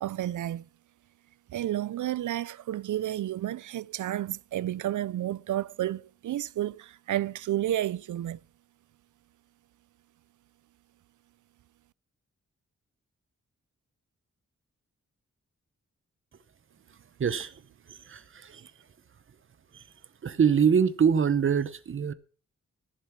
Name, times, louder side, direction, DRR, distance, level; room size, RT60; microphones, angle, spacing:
voice 1, 0.0-0.7 1.5-8.4, right 12 dB, 85° right, 0.5 m, -31 dB
voice 2, 17.2-17.5 17.9-18.7 19.7-19.8 20.2-22.1, right 7 dB, 45° right, 0.8 m, -25 dB
14.5 x 7.4 x 5.9 m
wide cardioid pair, 170°, 29 cm